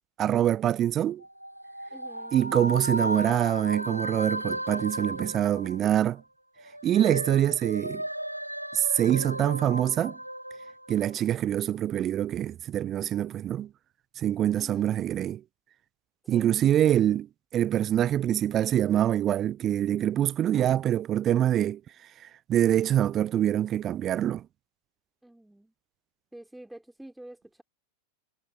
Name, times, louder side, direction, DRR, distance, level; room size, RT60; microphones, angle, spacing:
voice 1, 0.2-1.2 2.3-6.2 6.8-8.0 8.7-10.2 10.9-13.7 14.2-15.4 16.3-17.3 17.5-21.8 22.5-24.4, right 11 dB, 30° right, 0.3 m, -25 dB
sound 1, 1.2-6.2 6.6-11.3, right 1 dB, 90° right, 3.4 m, -35 dB
voice 2, 1.9-2.4 14.5-15.0 16.2-16.6 25.2-25.7 26.3-27.6, right 1 dB, 5° right, 3.4 m, -48 dB
figure-of-eight pair, 90°, 0 cm